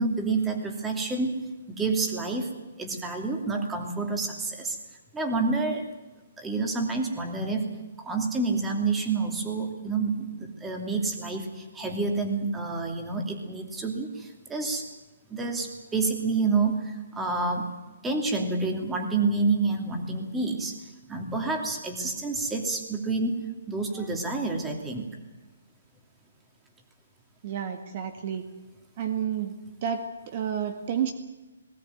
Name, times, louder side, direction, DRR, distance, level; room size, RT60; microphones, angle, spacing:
voice 1, 0.0-1.4 1.7-2.5 2.8-4.8 5.1-5.8 6.4-7.7 8.0-14.9 15.3-17.7 18.0-20.8 21.1-25.1, right 3 dB, 10° right, 3 dB, 2.8 m, -28 dB
voice 2, 27.4-28.5 29.0-29.6 29.8-31.1, right 8 dB, 40° right, 6 dB, 1.8 m, -30 dB
20.0 x 19.0 x 9.3 m, 1.2 s
hypercardioid pair, 155°, 0 cm